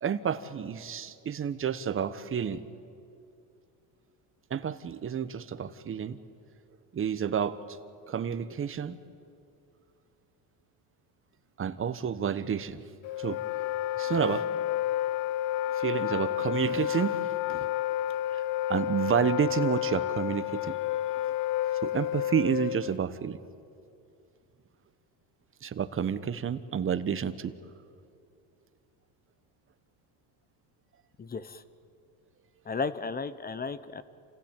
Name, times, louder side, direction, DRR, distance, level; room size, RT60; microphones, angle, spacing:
voice 1, 0.0-2.7 4.5-6.2 6.9-7.6 8.1-9.0 11.6-12.8 13.2-13.4 14.0-14.5 15.7-17.7 18.3-18.4 18.7-20.7 21.8-23.4 25.6-27.5, right 8 dB, 25° right, 13 dB, 1.1 m, -30 dB
Wind instrument woodwind instrument, 13.0-23.0, left 12 dB, 55° left, 0.5 m, -30 dB
voice 2, 31.2-31.6 32.6-34.0, left 4 dB, 20° left, 15 dB, 0.8 m, -34 dB
28.5 x 16.0 x 9.0 m, 2.5 s
supercardioid pair, 115°, 46 cm